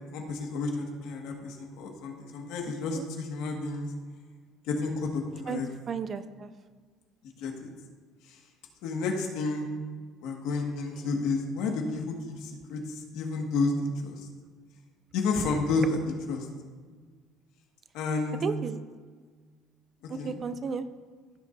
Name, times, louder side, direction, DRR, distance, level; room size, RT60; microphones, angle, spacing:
voice 1, 0.1-3.9 4.7-5.7 7.4-7.7 8.8-9.7 10.2-12.8 13.1-13.7 14.0-14.2 15.1-16.0 16.3-16.5 17.9-18.4 20.2-20.3, left 3 dB, 70° left, 2 dB, 1.7 m, -31 dB
voice 2, 2.7-3.1 5.5-5.6 5.9-6.5 18.4-18.8 20.1-20.8, right 6 dB, 30° right, 12 dB, 0.4 m, -34 dB
15.5 x 6.9 x 2.6 m, 1.5 s
cardioid pair, 170°, 0 cm